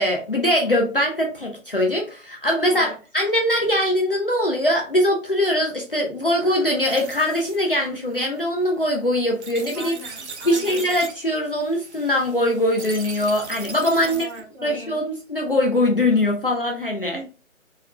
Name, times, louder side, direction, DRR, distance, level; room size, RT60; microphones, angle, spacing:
voice 1, 0.0-9.9 10.4-14.3 14.6-17.2, left 1 dB, 45° left, -1 dB, 0.5 m, -22 dB
sound 1, 6.3-14.4, right 4 dB, 55° right, 0.5 m, -40 dB
voice 2, 9.7-10.9 14.1-15.0 17.1-17.2, right 1 dB, 25° right, -7 dB, 1.2 m, -39 dB
3.6 x 2.1 x 2.2 m, 0.35 s
figure-of-eight pair, 150°, 41 cm